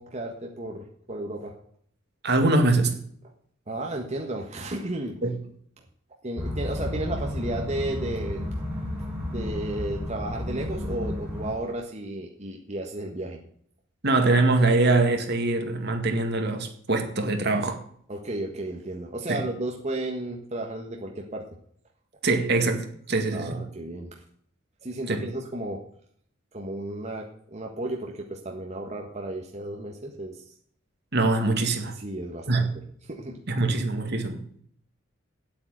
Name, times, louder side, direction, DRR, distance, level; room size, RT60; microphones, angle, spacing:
voice 1, 0.0-1.5 3.7-5.2 6.2-8.4 9.3-13.4 18.1-21.4 23.3-24.2 24.8-25.8 26.5-30.4 31.9-32.8 33.1-33.4, right 1 dB, 35° right, 1.5 m, -33 dB
voice 2, 2.2-3.0 5.2-5.4 14.0-17.8 19.3-19.4 22.2-23.6 25.1-25.2 31.1-32.0 32.5-32.8 33.5-34.4, right 2 dB, 55° right, 2.1 m, -23 dB
sound 1, 6.4-11.5, left 1 dB, 10° right, 5.3 m, -32 dB
9.1 x 8.6 x 8.9 m
head